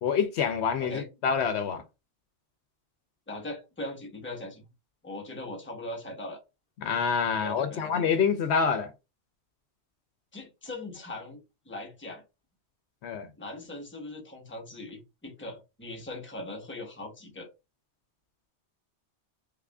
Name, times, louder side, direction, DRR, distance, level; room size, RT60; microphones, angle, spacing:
voice 1, 0.0-1.8 6.8-8.9 13.0-13.3, left 6 dB, 75° left, 0.9 m, -27 dB
voice 2, 3.3-4.6 5.0-6.4 7.3-7.9 10.3-12.2 13.4-17.5, left 1 dB, 10° left, 0.9 m, -40 dB
3.5 x 2.4 x 3.4 m
omnidirectional pair, 1.2 m